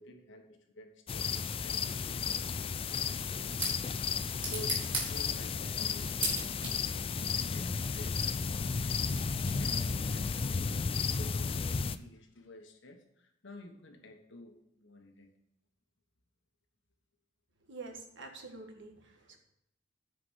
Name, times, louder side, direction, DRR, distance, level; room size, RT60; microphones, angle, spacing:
voice 1, 0.0-6.8 7.2-10.8 11.1-15.3, left 1 dB, 65° left, 4 dB, 1.4 m, -51 dB
sound 1, 1.1-12.0, left 5 dB, 30° left, 0.3 m, -33 dB
sound 2, 3.0-9.9, right 3 dB, 25° right, 3.6 m, -41 dB
voice 2, 17.7-19.4, right 3 dB, 65° right, 4 dB, 1.6 m, -47 dB
9.7 x 5.0 x 6.3 m, 0.78 s
head